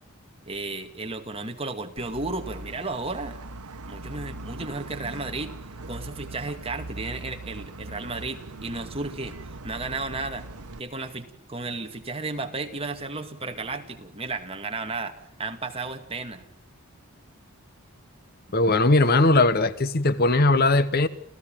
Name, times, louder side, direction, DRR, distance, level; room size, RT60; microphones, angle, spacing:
voice 1, 0.5-3.4 3.9-5.5 5.9-9.4 9.6-10.5 10.8-16.5, right 3 dB, 25° right, 6 dB, 2.2 m, -33 dB
sound 1, 2.0-10.8, right 2 dB, 85° right, 1.2 m, -40 dB
voice 2, 18.5-21.1, left 2 dB, 45° left, 15 dB, 1.0 m, -19 dB
29.5 x 15.5 x 9.0 m, 0.73 s
head